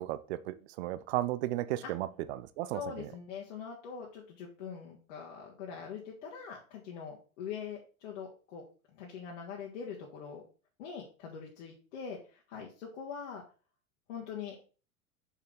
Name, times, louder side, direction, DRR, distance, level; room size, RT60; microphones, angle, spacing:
voice 1, 0.0-3.1, right 15 dB, 50° right, 15 dB, 0.7 m, -35 dB
voice 2, 2.7-8.6 8.9-10.4 10.8-13.4 14.1-14.7, left 6 dB, 55° left, -3 dB, 1.7 m, -43 dB
6.3 x 5.7 x 3.8 m, 0.38 s
figure-of-eight pair, 85°, 42 cm